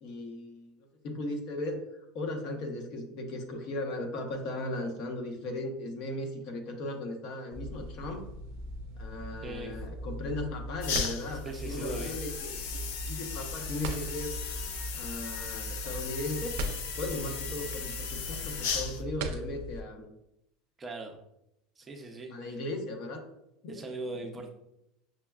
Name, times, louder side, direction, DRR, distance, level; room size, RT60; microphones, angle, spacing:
voice 1, 0.0-0.8 1.0-8.2 9.0-12.8 13.1-14.4 14.9-16.6 17.0-20.1 22.3-23.2 23.6-23.8, left 1 dB, 50° left, 3 dB, 0.7 m, -37 dB
sound 1, 7.5-19.8, right 1 dB, 75° right, 0.4 m, -40 dB
voice 2, 9.4-9.7 11.4-12.1 20.8-21.2 21.8-22.3 23.7-24.5, right 2 dB, 15° right, 3 dB, 0.6 m, -39 dB
sound 2, 10.8-19.0, left 6 dB, 85° left, 0.5 m, -37 dB
6.3 x 2.2 x 2.3 m, 0.83 s
supercardioid pair, 155°, 0 cm